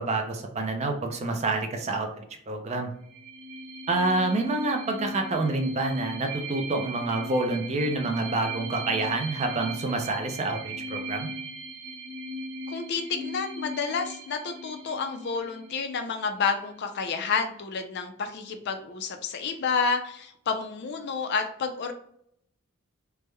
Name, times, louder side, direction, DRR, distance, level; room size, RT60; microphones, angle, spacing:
voice 1, 0.0-2.1 2.5-2.9 3.9-11.3, right 2 dB, 30° right, 4 dB, 0.5 m, -28 dB
sound 1, 3.0-16.4, right 1 dB, 70° right, 0.9 m, -38 dB
voice 2, 12.7-21.9, left 5 dB, 50° left, 6 dB, 0.4 m, -30 dB
3.4 x 2.1 x 3.2 m, 0.69 s
head